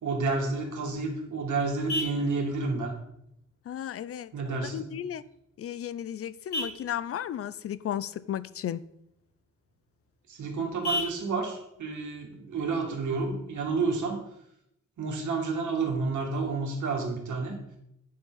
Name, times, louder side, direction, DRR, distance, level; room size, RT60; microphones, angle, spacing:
voice 1, 0.0-2.9 4.3-4.9 10.3-14.2 15.0-17.5, right 4 dB, 75° right, 2.2 m, -30 dB
Vehicle horn car horn honking, 0.6-13.6, left 1 dB, 70° left, 3.3 m, -41 dB
voice 2, 3.7-5.2 5.6-8.8, left 10 dB, 50° left, 0.4 m, -34 dB
9.4 x 7.0 x 3.9 m
wide cardioid pair, 170°, 30 cm